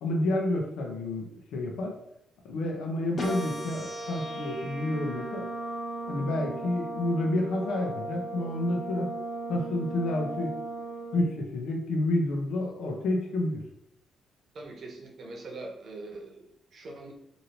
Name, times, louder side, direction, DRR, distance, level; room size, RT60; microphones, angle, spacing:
voice 1, 0.0-1.9 2.5-5.5 6.1-9.1 9.5-10.5 11.1-13.6, left 1 dB, 85° left, 1 dB, 0.7 m, -29 dB
sound 1, 3.2-11.2, right 2 dB, 45° left, 0.8 m, -37 dB
voice 2, 14.5-17.1, right 2 dB, 55° right, 0 dB, 0.8 m, -42 dB
3.0 x 2.6 x 2.8 m, 0.78 s
cardioid pair, 90°, 0 cm